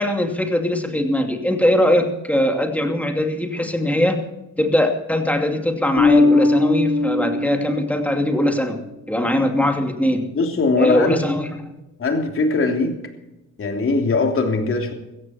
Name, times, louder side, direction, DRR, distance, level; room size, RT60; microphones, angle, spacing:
voice 1, 0.0-4.2 4.6-8.8 9.1-10.3 10.8-11.7, left 1 dB, 5° left, 4 dB, 2.7 m, -21 dB
Bass guitar, 6.0-8.6, left 3 dB, 70° left, 6.9 m, -19 dB
voice 2, 10.3-11.3 12.0-13.0 13.6-14.9, left 3 dB, 45° left, 4 dB, 3.2 m, -20 dB
16.0 x 14.5 x 4.4 m, 0.95 s
cardioid pair, 90°, 30 cm